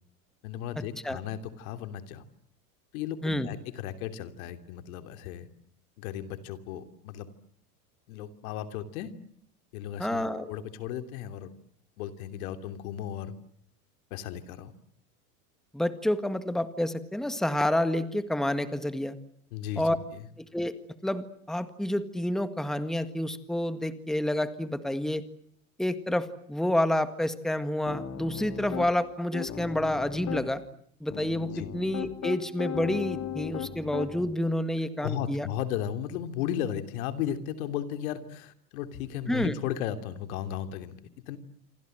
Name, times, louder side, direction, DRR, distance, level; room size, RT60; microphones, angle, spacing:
voice 1, 0.4-2.2 2.9-5.5 6.0-7.3 8.1-9.1 9.7-11.5 12.0-13.3 14.1-14.7 19.5-20.3 31.5-31.7 35.0-41.0 41.3-41.4, left 10 dB, 70° left, 9 dB, 3.0 m, -35 dB
voice 2, 10.0-10.5 15.7-19.2 19.8-20.0 20.4-20.7 21.0-25.2 25.8-30.6 31.0-35.5 39.3-39.5, left 1 dB, ahead, 12 dB, 1.7 m, -29 dB
Piano, 27.9-28.9 29.3-30.5 31.1-34.3, left 8 dB, 35° left, 4.1 m, -36 dB
28.0 x 24.5 x 7.9 m, 0.67 s
hypercardioid pair, 110°, 44 cm